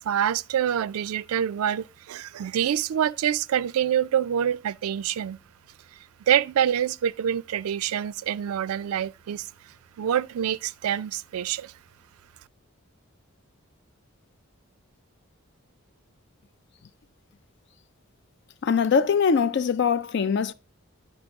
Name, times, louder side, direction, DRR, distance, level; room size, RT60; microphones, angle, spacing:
voice 1, 0.0-5.4 6.3-9.5 10.0-11.7, right 9 dB, 90° right, 0.3 m, -26 dB
voice 2, 18.6-20.5, left 6 dB, 55° left, 0.4 m, -22 dB
9.9 x 5.2 x 3.5 m
head